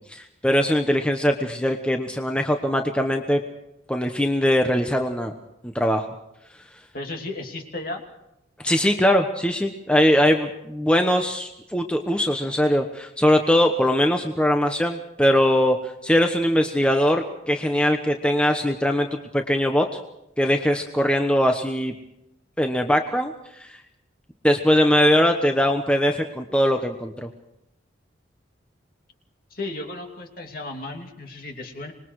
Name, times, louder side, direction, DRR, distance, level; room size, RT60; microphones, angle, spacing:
voice 1, 0.1-3.4 3.9-5.3 5.6-6.1 8.6-20.0 20.4-21.9 22.6-23.3 23.6-23.8 24.4-27.3, equal, 5° left, 4 dB, 1.0 m, -21 dB
voice 2, 6.9-8.0 29.5-31.9, left 2 dB, 50° left, 3 dB, 2.9 m, -34 dB
26.0 x 21.0 x 4.8 m, 0.85 s
head